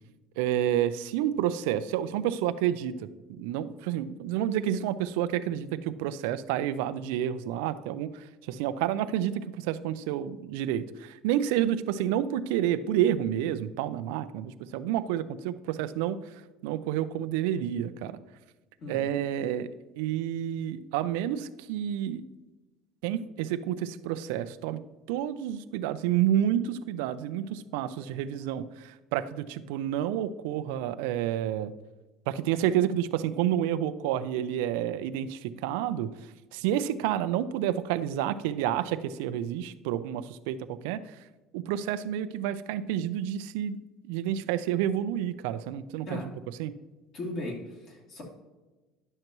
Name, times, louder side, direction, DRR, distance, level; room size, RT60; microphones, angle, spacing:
voice 1, 0.4-3.0 3.3-8.1 8.5-16.2 16.6-18.2 18.9-19.7 20.0-22.2 23.0-24.8 25.1-31.7 32.3-36.1 36.5-40.6 40.8-41.0 41.5-46.2 46.6-46.7, right 11 dB, 90° right, 13 dB, 0.4 m, -29 dB
voice 2, 47.1-48.2, left 1 dB, 50° left, -1 dB, 2.6 m, -37 dB
10.5 x 6.6 x 3.0 m, 1.2 s
cardioid pair, 140°, 0 cm